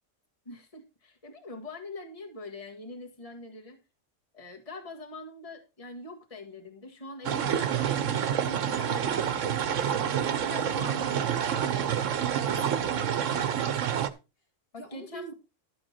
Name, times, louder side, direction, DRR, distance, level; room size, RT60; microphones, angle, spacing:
voice 1, 0.5-3.8 4.3-11.9 14.7-15.3, left 2 dB, 30° left, 4 dB, 1.9 m, -43 dB
sound 1, 7.2-14.1, right 9 dB, 80° right, 1.2 m, -28 dB
voice 2, 10.6-11.0 12.4-14.1 14.7-15.3, equal, 50° left, 2 dB, 2.0 m, -45 dB
12.5 x 7.7 x 4.3 m, 0.29 s
omnidirectional pair, 1.3 m